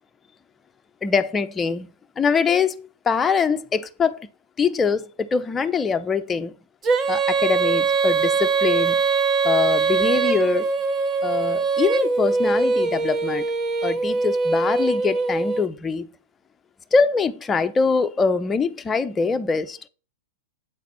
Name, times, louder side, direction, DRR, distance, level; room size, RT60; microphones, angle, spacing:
voice 1, 1.0-1.9 2.2-2.8 3.0-4.3 4.6-6.5 7.1-9.0 9.4-10.7 11.2-13.5 13.8-16.1 16.9-19.8, left 5 dB, 15° left, 0.6 m, -23 dB
Female singing, 6.8-15.6, right 4 dB, 25° right, 0.9 m, -22 dB
8.1 x 4.2 x 4.2 m
hypercardioid pair, 120°, 0 cm